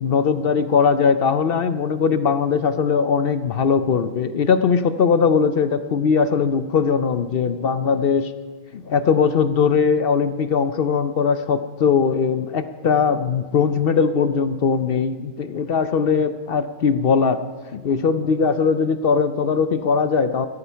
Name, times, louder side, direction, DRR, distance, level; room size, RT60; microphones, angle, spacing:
voice 1, 0.0-8.3 8.7-17.4 17.7-20.5, left 6 dB, 60° left, 11 dB, 0.6 m, -20 dB
14.5 x 13.5 x 5.6 m, 1.5 s
omnidirectional pair, 1.6 m